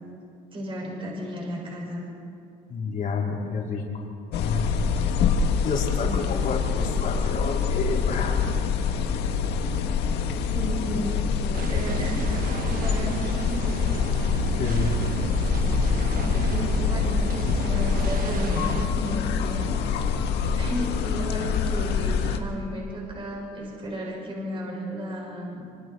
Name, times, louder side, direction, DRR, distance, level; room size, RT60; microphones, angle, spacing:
voice 1, 0.5-2.0 6.1-6.3 9.6-9.8 10.3-11.2 11.7-13.7 16.1-19.8 20.6-25.7, equal, 30° right, -3 dB, 6.6 m, -34 dB
voice 2, 2.7-3.8 4.4-4.7 5.6-8.5 14.5-14.9, left 5 dB, 50° left, -2 dB, 4.0 m, -29 dB
sound 1, 4.3-22.4, left 6 dB, 80° left, 1.6 m, -25 dB
sound 2, 11.5-18.9, right 7 dB, 55° right, 1.2 m, -33 dB
26.0 x 25.5 x 4.7 m, 2.6 s
cardioid pair, 110°, 17 cm